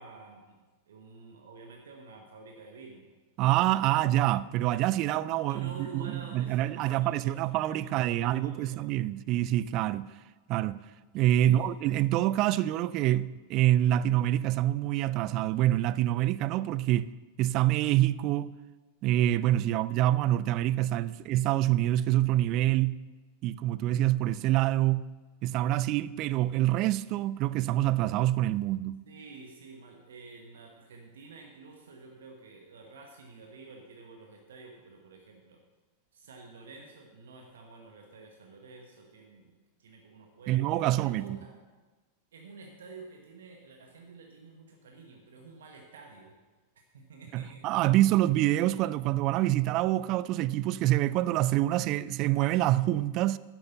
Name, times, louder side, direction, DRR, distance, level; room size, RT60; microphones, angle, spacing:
voice 1, 0.0-3.0 5.5-8.9 11.4-11.8 29.1-35.6 36.1-41.6 42.3-46.3 46.9-47.7, right 4 dB, 65° right, 1.2 m, -49 dB
voice 2, 3.4-10.1 10.5-10.8 11.1-17.1 17.4-18.5 19.0-23.0 23.4-25.1 25.4-29.0 40.5-41.4 47.3-53.4, right 14 dB, 40° right, 0.4 m, -26 dB
10.5 x 7.8 x 6.9 m
figure-of-eight pair, 90°, 0 cm